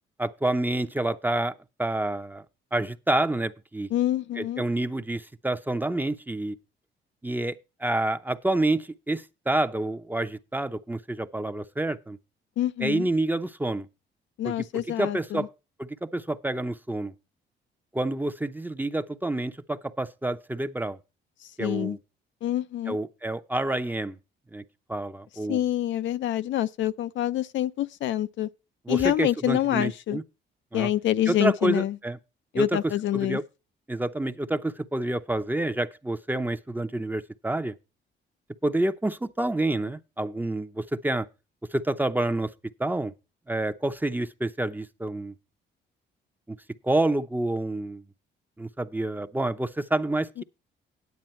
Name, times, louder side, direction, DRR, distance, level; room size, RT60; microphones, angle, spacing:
voice 1, 0.2-2.4 2.7-3.9 4.4-6.6 7.2-12.2 12.8-13.9 14.4-15.5 15.8-17.1 17.9-21.0 21.6-22.0 22.9-24.2 24.5-24.6 24.9-25.6 28.9-30.2 30.7-30.9 31.3-32.2 32.5-32.8 33.1-33.4 33.9-37.8 38.6-41.3 41.7-42.5 42.8-43.1 43.5-45.3 46.5-46.6 46.8-48.0 48.6-50.4, right 1 dB, 10° right, 0.7 m, -28 dB
voice 2, 3.9-4.6 12.6-13.1 14.4-15.5 21.6-22.0 22.4-23.0 25.5-28.5 28.9-30.2 30.7-31.9 32.5-33.4 50.4-50.5, left 12 dB, 70° left, 0.5 m, -26 dB
9.4 x 8.5 x 4.3 m
cardioid pair, 90°, 20 cm